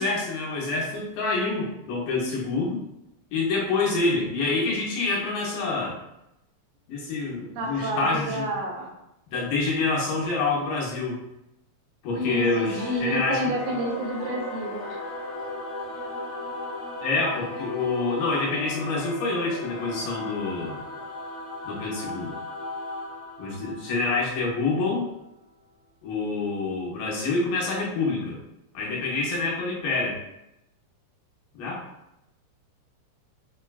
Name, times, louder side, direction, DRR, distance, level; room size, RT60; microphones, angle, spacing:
voice 1, 0.0-2.8 3.3-6.0 6.9-8.5 9.3-11.2 12.0-13.5 17.0-20.8 21.6-22.3 23.4-25.1 26.0-28.4 28.7-30.2 31.5-31.8, left 3 dB, 80° left, -3 dB, 2.3 m, -27 dB
voice 2, 7.5-8.9 12.1-14.8, right 1 dB, 80° right, -1 dB, 2.1 m, -29 dB
Singing / Musical instrument, 12.2-25.1, left 1 dB, 50° left, 0.8 m, -36 dB
5.9 x 2.2 x 2.3 m, 0.85 s
omnidirectional pair, 3.6 m